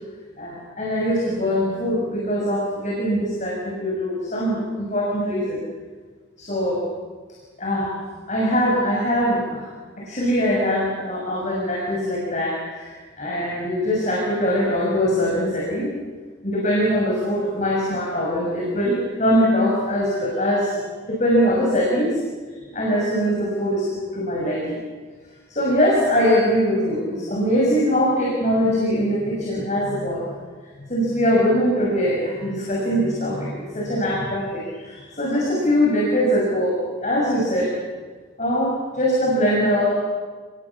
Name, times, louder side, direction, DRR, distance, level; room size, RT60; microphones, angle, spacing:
voice 1, 0.4-5.6 6.4-6.8 7.6-7.9 8.3-9.7 10.0-15.9 16.4-22.2 22.7-23.9 24.1-24.8 25.5-30.3 30.9-37.7 38.4-40.0, equal, 35° left, -3 dB, 6.7 m, -22 dB
29.5 x 21.5 x 8.6 m, 1.4 s
head